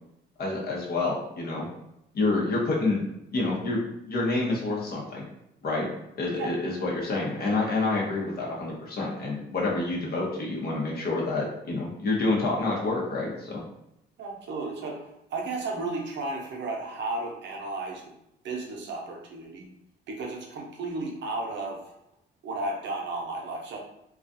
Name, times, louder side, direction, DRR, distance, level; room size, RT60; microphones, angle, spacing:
voice 1, 0.4-1.7 2.1-3.0 3.3-3.8 4.1-5.3 5.6-5.9 6.2-13.6, left 2 dB, 50° left, -3 dB, 0.8 m, -28 dB
voice 2, 14.2-18.1 18.4-19.7 20.1-21.9 22.4-23.8, right 2 dB, 65° right, 0 dB, 0.7 m, -34 dB
2.3 x 2.3 x 2.6 m, 0.81 s
cardioid pair, 90°, 20 cm